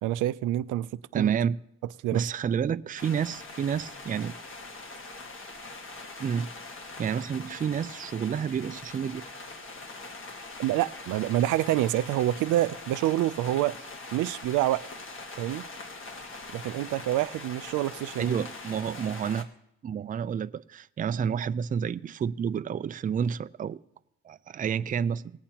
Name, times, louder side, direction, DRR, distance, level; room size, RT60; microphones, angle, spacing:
voice 1, 0.0-1.3 2.0-2.2 10.6-13.8 14.1-14.8 15.4-15.7 16.5-18.4, right 14 dB, 85° right, 0.5 m, -27 dB
voice 2, 1.1-1.6 2.1-4.3 6.2-6.5 7.0-9.2 18.2-19.5 19.8-23.8 24.2-25.3, right 7 dB, 30° right, 0.4 m, -29 dB
sound 1, 3.0-19.4, left 3 dB, 45° left, 1.7 m, -43 dB
19.0 x 8.7 x 2.9 m
cardioid pair, 90°, 30 cm